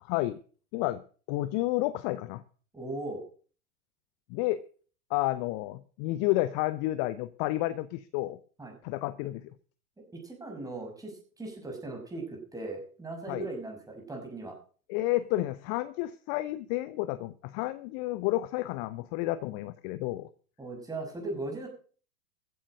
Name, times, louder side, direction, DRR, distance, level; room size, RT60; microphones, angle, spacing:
voice 1, 0.1-0.4 0.7-1.0 1.3-2.4 4.3-4.6 5.1-8.4 8.8-9.5 13.3-13.5 14.9-20.3, left 17 dB, 30° left, 16 dB, 0.7 m, -30 dB
voice 2, 2.7-3.2 8.6-8.7 10.0-14.5 20.6-21.7, right 2 dB, 10° right, 1 dB, 5.8 m, -38 dB
15.0 x 9.3 x 6.4 m, 0.42 s
figure-of-eight pair, 100°, 44 cm